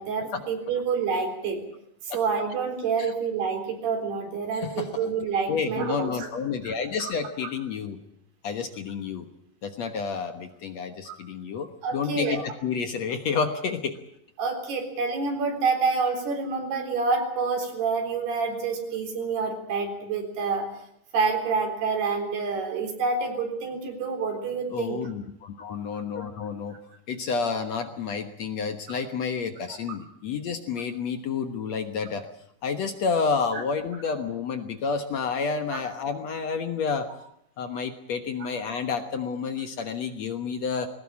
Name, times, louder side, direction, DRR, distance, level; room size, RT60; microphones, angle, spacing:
voice 1, 0.0-1.6 2.0-6.3 6.6-6.7 7.0-7.1 11.1-11.2 11.8-12.4 14.4-20.7 21.1-25.0, right 5 dB, 80° right, 4 dB, 5.9 m, -28 dB
voice 2, 4.5-4.9 5.5-8.0 8.4-9.3 9.6-14.0 24.7-26.8 27.1-32.3 32.6-37.1 37.6-40.9, left 5 dB, 60° left, 7 dB, 1.9 m, -30 dB
21.0 x 18.5 x 8.6 m, 0.72 s
omnidirectional pair, 4.6 m